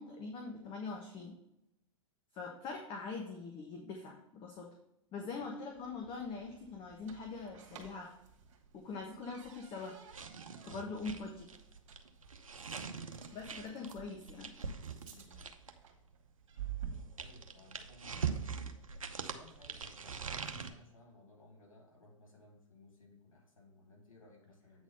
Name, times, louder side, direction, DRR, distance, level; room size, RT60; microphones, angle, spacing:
voice 1, 0.0-1.4 2.3-4.7 5.1-8.1 8.7-10.0 10.7-11.5 13.3-14.5, left 4 dB, 30° left, 2 dB, 1.3 m, -43 dB
sound 1, 5.7-20.8, right 9 dB, 65° right, 1.9 m, -52 dB
sound 2, 10.1-15.9 16.7-20.7, right 6 dB, 85° right, 0.8 m, -42 dB
voice 2, 13.6-14.1 15.0-15.5 17.2-18.7 19.1-24.8, left 2 dB, 80° left, 0 dB, 2.9 m, -60 dB
8.4 x 4.2 x 5.6 m, 0.82 s
figure-of-eight pair, 105°, 17 cm